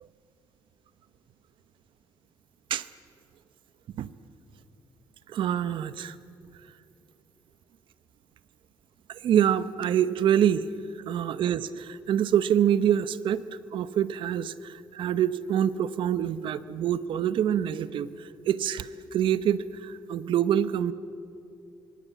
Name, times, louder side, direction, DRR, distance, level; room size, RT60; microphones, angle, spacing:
voice 1, 5.3-6.1 9.1-10.7 11.1-13.4 13.7-20.9, right 10 dB, 75° right, 15 dB, 0.9 m, -26 dB
26.5 x 23.0 x 8.3 m, 2.7 s
cardioid pair, 90°, 8 cm